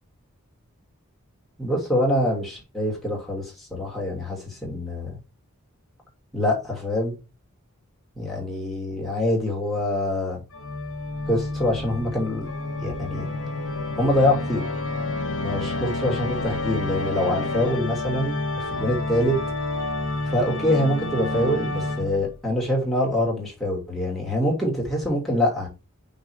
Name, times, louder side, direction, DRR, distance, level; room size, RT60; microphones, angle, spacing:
voice 1, 1.6-5.2 6.3-7.1 8.2-10.4 11.3-12.5 12.8-13.3 14.0-14.6 15.4-19.4 20.2-25.7, left 1 dB, ahead, 2.7 m, -25 dB
Organ, 10.5-22.4, left 2 dB, 60° left, 1.3 m, -29 dB
6.0 x 4.1 x 4.8 m
head